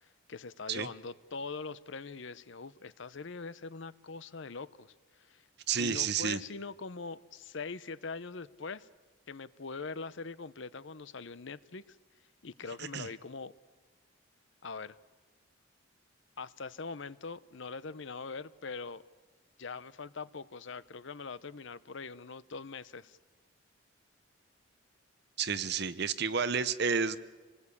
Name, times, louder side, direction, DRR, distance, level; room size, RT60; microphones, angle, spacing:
voice 1, 0.0-5.5 5.8-8.9 9.3-12.0 12.4-13.5 14.6-15.0 16.4-19.0 19.6-23.2, left 4 dB, 60° left, 16 dB, 0.7 m, -42 dB
voice 2, 5.7-6.4 12.8-13.1 25.4-27.2, right 6 dB, 50° right, 14 dB, 0.8 m, -31 dB
27.0 x 19.5 x 8.5 m, 1.3 s
head